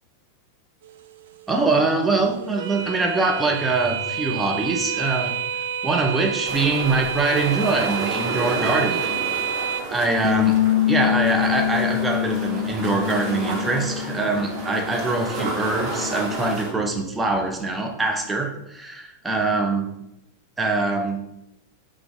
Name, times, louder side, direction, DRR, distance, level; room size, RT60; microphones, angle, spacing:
sound 1, 0.8-9.8, right 7 dB, 60° right, 0.4 m, -29 dB
voice 1, 1.5-5.4 5.8-9.1 9.9-10.6 10.9-19.9 20.6-21.2, right 3 dB, 10° right, 0.6 m, -23 dB
sound 2, 6.4-16.7, right 3 dB, 40° right, 1.2 m, -32 dB
Bass guitar, 10.2-16.5, left 13 dB, 40° left, 0.5 m, -25 dB
3.8 x 2.4 x 4.5 m
figure-of-eight pair, 90°, 0 cm